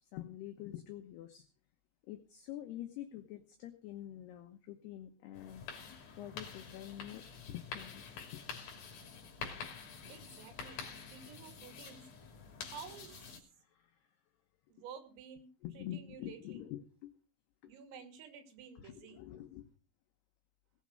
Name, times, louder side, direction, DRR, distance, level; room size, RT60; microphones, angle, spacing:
voice 1, 0.0-1.5 2.0-5.6 6.2-8.4 13.5-14.2 15.6-17.1 17.6-17.7 18.8-19.7, left 12 dB, 75° left, 6 dB, 2.6 m, -47 dB
sound 1, 5.3-13.4, left 6 dB, 50° left, 4.3 m, -47 dB
voice 2, 10.1-12.1 12.6-13.2 14.7-15.5 15.8-16.6 17.7-19.2, right 7 dB, 80° right, 6 dB, 5.2 m, -52 dB
19.0 x 7.2 x 6.5 m, 0.36 s
omnidirectional pair, 5.9 m